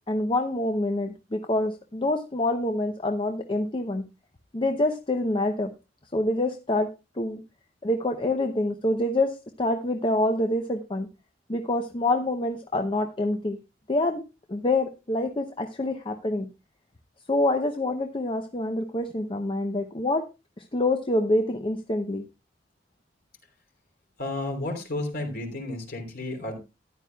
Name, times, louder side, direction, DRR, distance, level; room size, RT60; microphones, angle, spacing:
voice 1, 0.1-4.1 4.5-5.7 6.1-6.9 7.2-7.4 7.8-11.1 11.5-13.6 13.9-14.2 14.5-16.5 17.3-20.2 20.7-22.2, left 2 dB, 30° left, 5 dB, 0.7 m, -26 dB
voice 2, 24.2-26.6, left 2 dB, 55° left, 3 dB, 3.4 m, -32 dB
13.5 x 11.0 x 2.3 m, 0.26 s
head